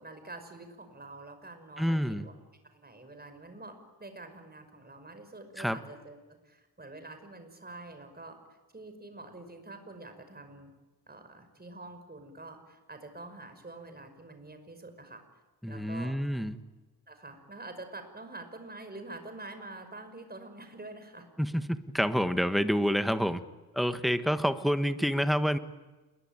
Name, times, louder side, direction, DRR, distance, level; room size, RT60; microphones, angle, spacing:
voice 1, 0.0-2.3 2.7-6.2 6.4-8.4 8.7-10.7 11.1-15.2 15.7-16.2 17.1-21.3, right 2 dB, 25° right, 7 dB, 5.6 m, -46 dB
voice 2, 1.8-2.3 5.6-5.8 15.6-16.6 21.4-23.4 23.7-25.6, equal, ahead, 9 dB, 1.5 m, -28 dB
28.5 x 22.0 x 9.0 m, 1.2 s
wide cardioid pair, 110°, 39 cm